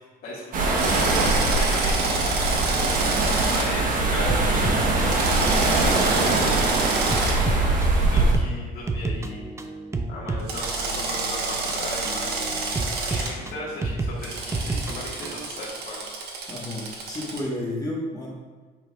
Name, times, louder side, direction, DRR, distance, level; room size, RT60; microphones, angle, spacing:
voice 1, 0.2-1.1 1.6-2.5 3.5-7.3 7.9-9.5 10.1-12.7 13.0-16.1, left 2 dB, 60° left, -7 dB, 1.5 m, -37 dB
sound 1, 0.5-8.4, right 2 dB, 55° right, 1.0 m, -22 dB
Drill, 0.8-3.7 5.0-7.3 10.5-13.3 14.2-17.4, right 3 dB, 70° right, 1.1 m, -29 dB
sound 2, 4.3-15.5, right 2 dB, 15° right, 0.4 m, -32 dB
voice 2, 16.5-18.3, left 1 dB, 20° left, -4 dB, 1.2 m, -31 dB
7.5 x 5.4 x 2.3 m, 1.4 s
cardioid pair, 110°, 17 cm